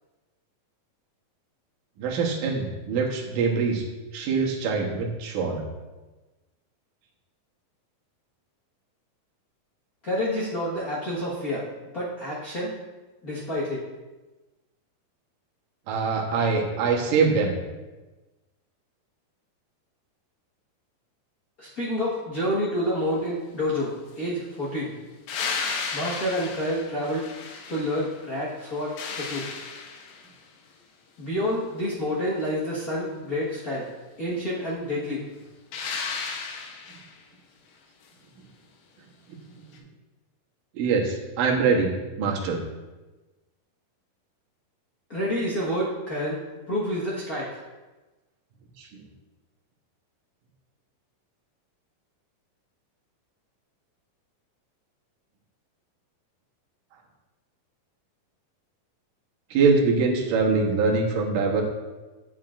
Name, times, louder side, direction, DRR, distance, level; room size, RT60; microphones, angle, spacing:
voice 1, 2.0-3.8 4.1-5.6 15.9-17.6 39.3-39.4 40.8-41.9 42.2-42.6 48.8-49.0 59.5-61.6, right 4 dB, 70° right, -1 dB, 2.5 m, -23 dB
voice 2, 10.0-11.6 11.9-12.7 13.2-13.8 21.6-24.9 25.9-27.3 27.7-29.5 31.2-33.8 34.2-35.2 45.1-46.4 46.7-47.6, equal, 65° left, -8 dB, 0.8 m, -28 dB
sound 1, 25.3-28.2 28.6-30.3 35.7-37.2 39.7-39.8, left 5 dB, 80° left, 2.6 m, -34 dB
9.1 x 8.7 x 2.5 m, 1.2 s
omnidirectional pair, 4.1 m